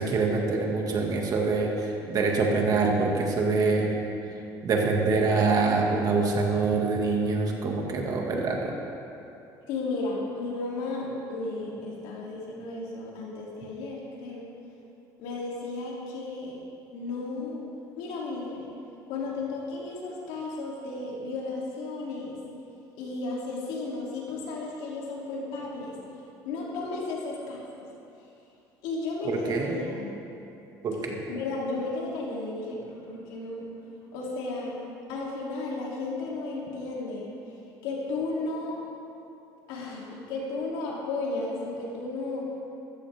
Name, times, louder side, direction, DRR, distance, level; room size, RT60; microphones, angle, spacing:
voice 1, 0.0-3.9 4.6-8.7 29.2-29.8 30.8-31.2, right 3 dB, 50° right, 0 dB, 2.2 m, -25 dB
voice 2, 9.7-14.5 15.2-16.6 16.9-17.6 18.0-18.6 19.1-22.3 22.9-25.9 26.4-27.6 28.8-30.1 31.3-33.7 34.1-34.8 35.1-37.3 37.8-38.8 39.7-42.5, left 3 dB, 90° left, -4 dB, 3.2 m, -34 dB
14.5 x 14.0 x 3.7 m, 2.8 s
cardioid pair, 110°, 8 cm